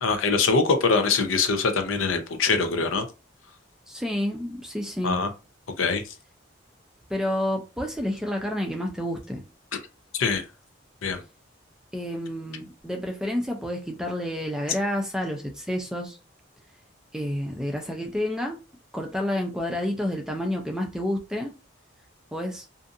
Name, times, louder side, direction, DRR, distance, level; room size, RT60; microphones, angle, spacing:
voice 1, 0.0-3.1 5.0-5.3 5.8-6.1 10.1-10.4 11.0-11.2, left 4 dB, 85° left, 0.6 m, -23 dB
voice 2, 3.9-5.2 7.1-9.4 11.9-16.2 17.1-18.6 18.9-21.5 22.3-22.6, left 1 dB, 5° right, 0.4 m, -29 dB
2.6 x 2.5 x 2.5 m
head